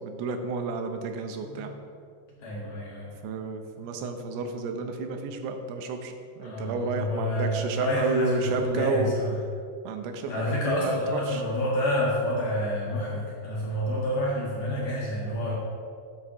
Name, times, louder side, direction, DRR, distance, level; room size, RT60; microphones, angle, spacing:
voice 1, 0.0-1.7 3.2-9.2 9.8-11.0 11.3-11.4, right 4 dB, 80° right, 5 dB, 2.8 m, -31 dB
voice 2, 1.4-1.7 2.3-3.1 3.8-3.9 6.4-9.3 10.3-15.6, left 1 dB, 60° left, -5 dB, 2.9 m, -28 dB
12.5 x 9.7 x 3.0 m, 2.3 s
omnidirectional pair, 4.9 m